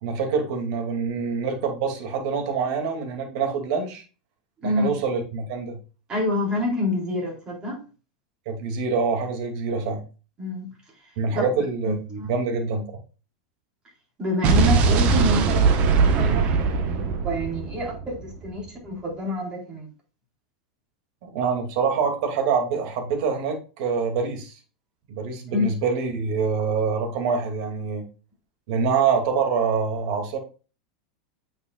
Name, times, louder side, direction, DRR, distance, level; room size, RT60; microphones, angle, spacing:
voice 1, 0.0-4.0 4.6-5.8 8.5-10.0 11.2-12.8 21.2-24.5 25.1-28.0 28.7-30.4, right 5 dB, 60° right, 2.5 m, -25 dB
voice 2, 6.1-7.8 10.4-10.7 11.3-11.5 11.8-12.3 14.2-19.9 25.5-25.7, left 1 dB, 25° right, 4.0 m, -27 dB
Explosion, 14.4-18.5, right 5 dB, 40° right, 1.1 m, -20 dB
8.7 x 6.2 x 2.4 m
supercardioid pair, 130°, 4 cm